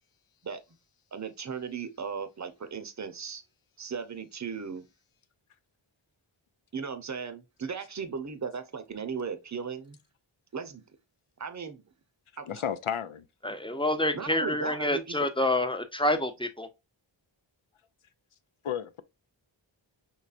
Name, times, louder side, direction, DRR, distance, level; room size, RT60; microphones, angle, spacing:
voice 1, 1.1-3.4 3.8-4.9 6.7-10.0 10.5-10.8 11.4-11.8 12.4-12.6 14.1-15.2, right 6 dB, 35° right, 0.7 m, -37 dB
voice 2, 12.5-13.3 18.6-19.0, left 9 dB, 90° left, 0.6 m, -32 dB
voice 3, 13.4-16.7, left 1 dB, 10° left, 0.6 m, -28 dB
5.6 x 3.1 x 2.5 m
wide cardioid pair, 50°, 49 cm